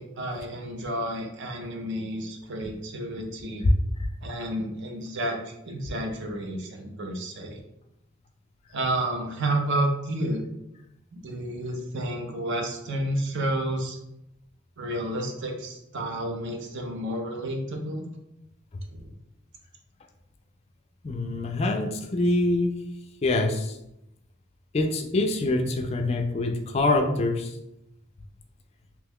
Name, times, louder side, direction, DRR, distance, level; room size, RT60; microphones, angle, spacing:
voice 1, 0.0-3.7 4.2-5.4 5.7-7.6 8.7-10.4 11.1-14.0 14.8-18.1 18.9-19.1, right 1 dB, 60° right, 3 dB, 0.6 m, -30 dB
voice 2, 21.0-22.7 23.2-23.8 24.7-27.5, left 2 dB, 30° left, 4 dB, 0.3 m, -25 dB
3.0 x 2.2 x 3.5 m, 0.82 s
head